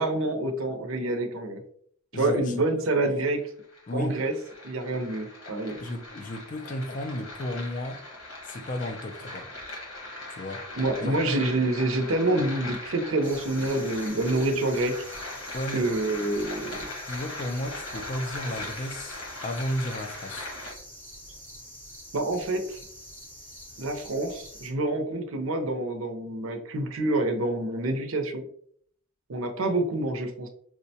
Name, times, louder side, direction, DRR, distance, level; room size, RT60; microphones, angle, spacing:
voice 1, 0.0-1.6 2.1-3.4 3.9-4.3 4.6-5.8 10.8-14.9 15.7-16.8 22.1-22.8 23.8-28.4 29.3-30.5, right 2 dB, 75° right, 5 dB, 0.6 m, -27 dB
voice 2, 2.1-2.8 3.9-4.2 5.8-8.0 8.4-9.5 10.3-10.6 11.0-11.4 15.5-15.9 17.1-20.5, left 1 dB, 40° left, 7 dB, 0.4 m, -33 dB
sound 1, 3.4-20.7, left 2 dB, 85° left, 1.1 m, -40 dB
sound 2, 13.2-24.7, equal, 10° left, 0.7 m, -46 dB
4.7 x 2.1 x 2.7 m, 0.63 s
head